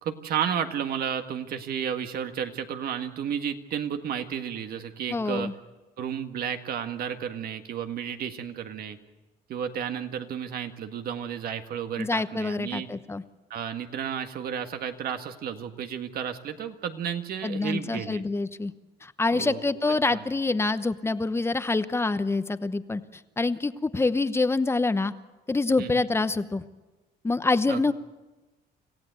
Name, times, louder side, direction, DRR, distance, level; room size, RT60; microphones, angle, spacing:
voice 1, 0.0-5.5 6.0-9.0 9.5-12.9 13.5-18.2 19.3-19.6 19.9-20.3 25.8-26.0 27.7-27.9, right 8 dB, 65° right, 7 dB, 1.8 m, -32 dB
voice 2, 5.1-5.5 12.0-13.2 17.4-18.7 19.0-25.1 25.5-26.6 27.2-27.9, left 3 dB, 15° left, 12 dB, 0.9 m, -26 dB
26.5 x 15.5 x 8.3 m, 1.2 s
cardioid pair, 110°, 17 cm